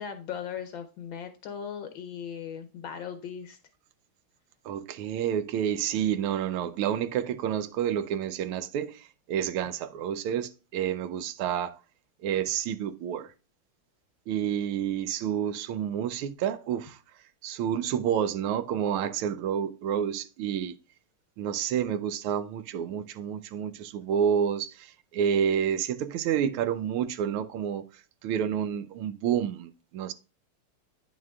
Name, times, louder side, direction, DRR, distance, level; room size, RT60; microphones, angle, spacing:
voice 1, 0.0-3.6, left 8 dB, 70° left, 1.3 m, -38 dB
voice 2, 4.7-9.0 9.3-11.7 12.2-13.3 14.3-17.0 17.4-20.7 21.4-24.9 25.1-27.8 28.2-30.1, right 9 dB, 85° right, 1.5 m, -29 dB
9.4 x 6.2 x 2.3 m
omnidirectional pair, 2.3 m